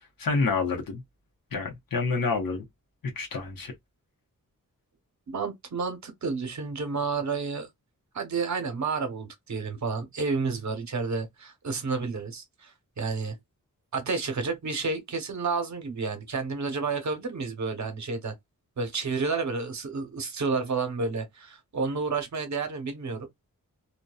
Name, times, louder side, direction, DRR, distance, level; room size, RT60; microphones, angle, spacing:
voice 1, 0.2-1.0 1.5-2.6 3.0-3.7, left 4 dB, 85° left, 0.8 m, -28 dB
voice 2, 5.3-7.7 8.1-13.4 13.9-18.3 18.8-23.3, right 4 dB, 55° right, 0.8 m, -30 dB
2.6 x 2.2 x 2.2 m
wide cardioid pair, 130°, 33 cm